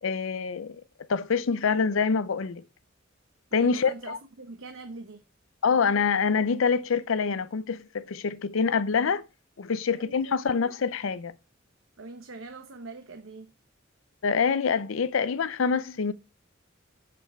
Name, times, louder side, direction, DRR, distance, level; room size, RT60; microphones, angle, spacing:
voice 1, 0.0-0.8 1.1-2.6 3.5-4.2 5.6-9.3 9.6-11.3 14.2-16.1, left 5 dB, 75° left, 0.5 m, -26 dB
voice 2, 3.5-5.2 9.9-10.7 12.0-13.5, right 3 dB, 75° right, 1.0 m, -43 dB
13.0 x 5.2 x 4.3 m
head